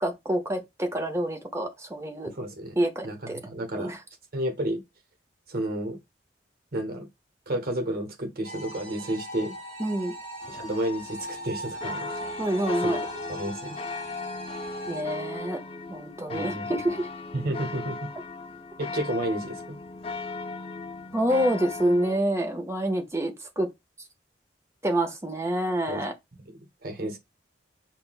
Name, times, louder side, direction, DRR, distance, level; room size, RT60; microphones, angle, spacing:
voice 1, 0.0-2.3 2.8-3.4 3.7-4.0 9.8-10.1 12.4-13.0 14.9-15.6 15.9-16.6 16.8-17.1 21.1-23.7 24.8-26.1, right 1 dB, 15° right, 0.7 m, -27 dB
voice 2, 2.3-2.8 3.0-3.9 4.3-4.8 5.5-6.0 6.7-7.1 7.5-9.5 10.5-12.2 12.8-12.9 13.3-13.8 16.3-16.7 17.3-18.1 18.8-19.8 25.9-26.0 26.3-27.2, right 1 dB, 55° right, 1.1 m, -31 dB
sound 1, 8.4-15.0, right 1 dB, 35° right, 2.3 m, -39 dB
sound 2, 10.4-22.2, left 3 dB, 30° left, 0.4 m, -37 dB
5.8 x 2.2 x 2.3 m
head